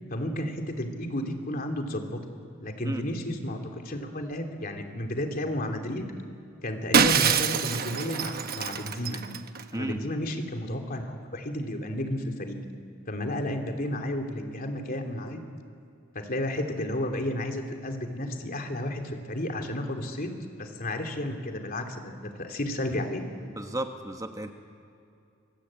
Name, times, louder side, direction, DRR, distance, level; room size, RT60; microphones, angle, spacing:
voice 1, 0.1-2.2 2.6-6.1 6.6-9.2 9.7-12.6 13.1-15.4 16.1-20.3 20.6-23.2, left 1 dB, 45° left, 4 dB, 3.0 m, -32 dB
Shatter, 6.9-9.6, right 6 dB, 50° right, 1.1 m, -25 dB
voice 2, 23.5-24.5, right 1 dB, 15° right, 5 dB, 1.4 m, -33 dB
25.5 x 24.0 x 8.8 m, 2.6 s
head